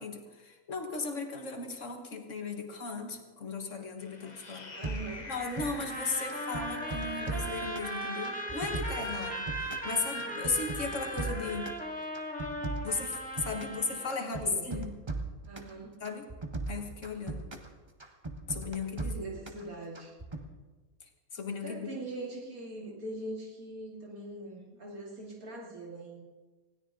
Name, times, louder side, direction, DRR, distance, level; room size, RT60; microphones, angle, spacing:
voice 1, 0.0-4.7 5.3-11.8 12.8-15.0 16.0-16.3 16.7-17.6 18.5-19.3 21.0-22.0, left 4 dB, 55° left, 4 dB, 1.9 m, -36 dB
sound 1, 4.0-11.7, left 1 dB, 30° left, 1.2 m, -44 dB
voice 2, 4.7-5.3 14.2-14.8 15.5-16.0 19.1-20.1 21.6-26.2, right 2 dB, 75° right, -2 dB, 3.4 m, -42 dB
sound 2, 4.8-6.0 6.3-7.9 8.2-9.9 10.2-11.8 12.1-13.8 14.1-15.7 16.0-17.7 18.0-19.6 19.9-20.4, right 3 dB, 20° right, 1.2 m, -38 dB
sound 3, 5.8-14.1, equal, 5° left, 2.4 m, -38 dB
20.0 x 16.5 x 3.8 m, 1.2 s
omnidirectional pair, 1.5 m